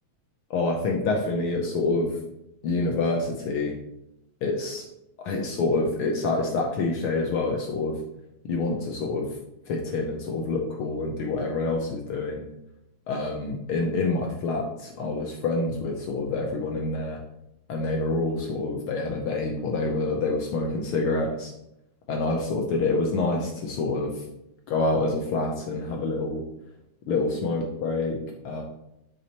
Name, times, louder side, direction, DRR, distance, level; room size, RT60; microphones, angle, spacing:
voice 1, 0.5-2.1 2.6-3.8 4.4-4.8 5.2-8.0 8.4-9.3 9.7-12.5 13.1-17.2 17.7-21.5 22.1-24.2 24.7-26.4 27.1-28.6, left 3 dB, 75° left, 1 dB, 1.2 m, -27 dB
7.9 x 7.0 x 2.9 m, 0.84 s
omnidirectional pair, 3.3 m